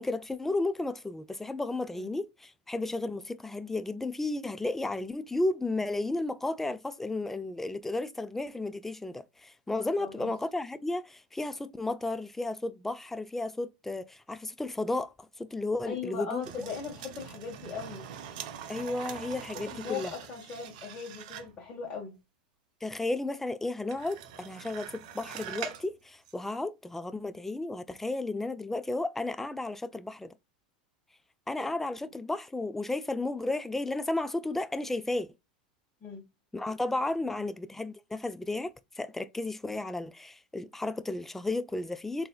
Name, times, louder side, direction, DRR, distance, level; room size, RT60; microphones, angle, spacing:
voice 1, 0.0-16.4 18.7-20.1 22.8-30.3 31.5-35.3 36.5-42.3, left 2 dB, 5° left, 0.4 m, -33 dB
voice 2, 9.9-10.3 15.9-18.1 19.7-22.1 36.0-36.2, left 6 dB, 25° left, 1.3 m, -39 dB
sound 1, 16.4-21.6 23.9-25.9 26.2-26.3, right 9 dB, 70° right, 0.6 m, -43 dB
3.9 x 2.6 x 2.3 m
hypercardioid pair, 110°, 4 cm